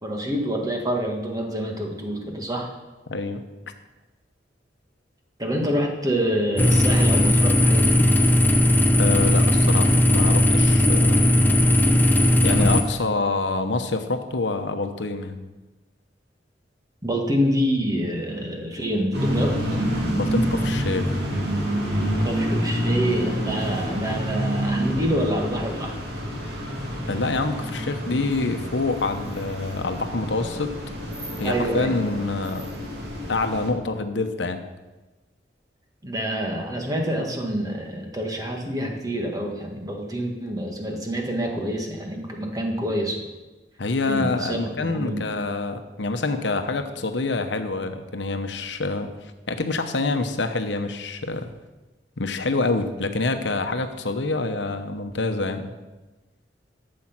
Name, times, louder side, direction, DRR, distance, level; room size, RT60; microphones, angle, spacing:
voice 1, 0.0-2.7 5.4-8.1 17.0-19.6 22.2-25.9 31.4-32.1 36.0-43.3 44.1-45.2, equal, 20° right, 1 dB, 1.7 m, -27 dB
voice 2, 3.1-3.4 9.0-11.4 12.4-15.4 20.1-21.2 27.1-30.7 31.4-32.7 33.3-34.6 43.8-51.5 52.2-55.7, left 3 dB, 75° left, 7 dB, 1.0 m, -26 dB
sound 1, 6.6-12.8, left 1 dB, 10° left, 0.8 m, -17 dB
sound 2, 19.1-33.7, equal, 65° right, 3.0 m, -28 dB
12.5 x 7.7 x 6.0 m, 1.1 s
head